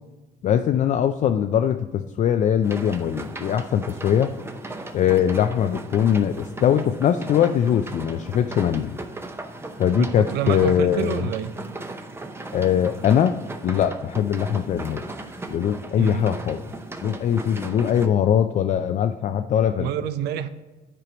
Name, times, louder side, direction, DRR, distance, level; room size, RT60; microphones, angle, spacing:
voice 1, 0.4-4.3 4.9-9.0 9.8-11.2 12.5-13.3 13.6-15.0 15.5-16.6 17.0-19.9, left 9 dB, 45° left, 7 dB, 0.4 m, -21 dB
sound 1, 2.6-18.1, right 2 dB, 15° right, 0.7 m, -37 dB
voice 2, 10.0-11.5 16.0-16.3 19.8-20.5, right 10 dB, 75° right, 12 dB, 0.6 m, -28 dB
10.0 x 4.5 x 5.1 m, 1.2 s
cardioid pair, 110°, 17 cm